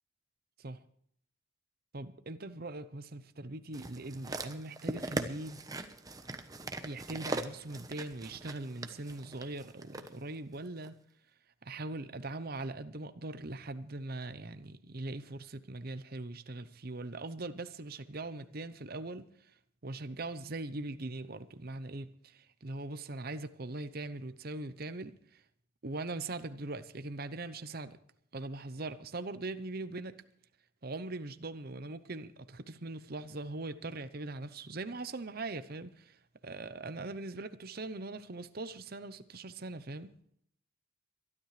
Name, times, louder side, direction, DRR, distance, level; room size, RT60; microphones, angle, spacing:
voice 1, 1.9-5.6 6.8-11.0 11.6-19.6 19.8-25.4 25.8-28.0 28.3-30.2 30.8-40.1, right 2 dB, 45° right, 0.8 m, -41 dB
sound 1, 3.7-10.1 10.8-10.9, right 2 dB, 15° right, 1.0 m, -40 dB
23.5 x 12.0 x 3.3 m
head